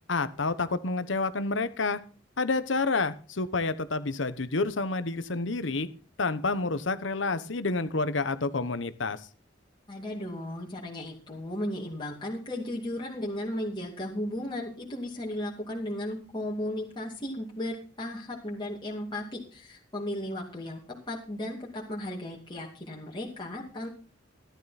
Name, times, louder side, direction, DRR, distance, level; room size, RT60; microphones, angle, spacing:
voice 1, 0.1-2.0 2.4-5.9 6.2-9.2, left 3 dB, 75° left, 13 dB, 1.1 m, -29 dB
voice 2, 9.9-20.8 21.1-23.9, left 1 dB, 25° left, -3 dB, 2.5 m, -35 dB
14.5 x 11.5 x 4.2 m, 0.38 s
head